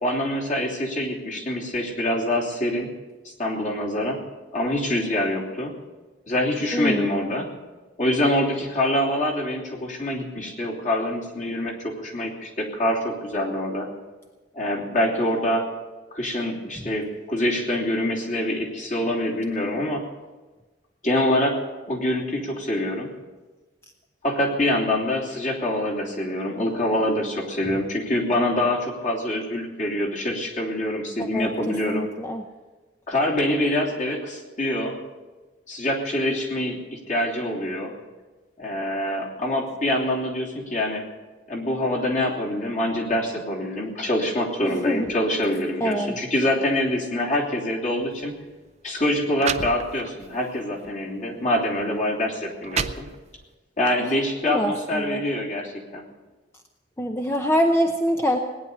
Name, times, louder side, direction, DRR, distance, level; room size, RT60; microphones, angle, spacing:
voice 1, 0.0-2.9 3.2-4.2 4.5-5.7 6.3-7.5 8.0-13.9 14.5-15.7 16.1-20.0 21.0-21.6 21.9-23.1 24.2-32.1 33.1-35.0 35.7-37.9 38.6-41.0 41.5-48.3 48.8-53.1 53.8-56.0, left 1 dB, 45° left, -2 dB, 3.1 m, -25 dB
voice 2, 6.7-7.3 31.3-32.4 44.6-45.1 45.8-46.1 54.5-55.2 57.0-58.4, equal, 15° left, 4 dB, 0.7 m, -24 dB
sound 1, 48.1-48.3 49.0-49.1 49.4-50.3 50.8-51.0 51.8-51.9 52.4-53.5, right 6 dB, 35° right, 0.6 m, -31 dB
19.0 x 10.0 x 6.7 m, 1.3 s
head